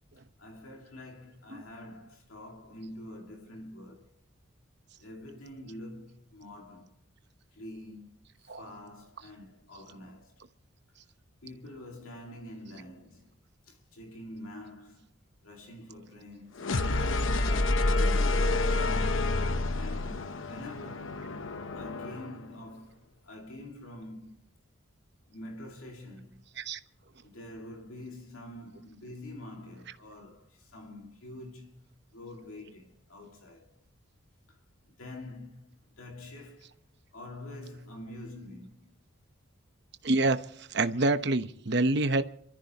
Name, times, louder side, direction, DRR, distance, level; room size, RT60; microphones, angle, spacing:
voice 1, 0.4-4.1 5.0-7.0 7.5-8.1 8.4-10.4 11.4-13.4 13.6-15.1 15.4-16.8 17.4-21.3 21.7-24.4 25.3-26.4 27.2-33.8 34.5-34.6 34.9-36.8 37.1-38.9, left 1 dB, 85° left, 2.2 m, -46 dB
sound 1, 16.6-22.4, left 2 dB, 70° left, 0.9 m, -28 dB
voice 2, 40.0-40.4 40.7-42.2, right 2 dB, 50° right, 1.0 m, -26 dB
27.5 x 14.0 x 3.0 m
head